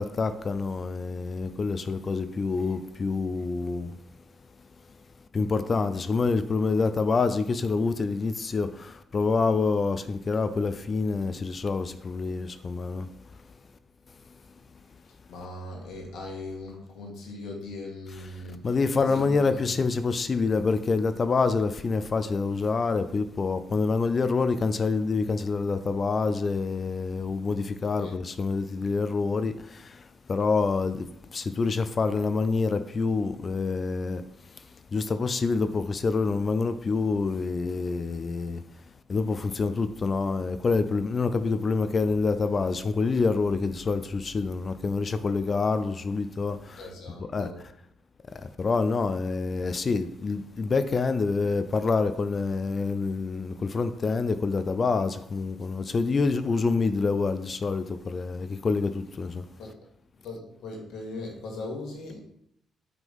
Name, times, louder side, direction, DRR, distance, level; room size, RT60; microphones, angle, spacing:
voice 1, 0.0-3.9 5.3-13.1 18.6-30.0 30.3-34.2 34.9-38.6 39.1-46.8 47.3-47.5 48.4-59.4, left 4 dB, 40° left, 0.4 m, -27 dB
voice 2, 15.0-19.8 28.0-28.2 46.8-47.7 59.6-59.7 60.2-62.2, left 2 dB, 80° left, 1.8 m, -39 dB
6.0 x 3.8 x 5.3 m
cardioid pair, 90°, 0 cm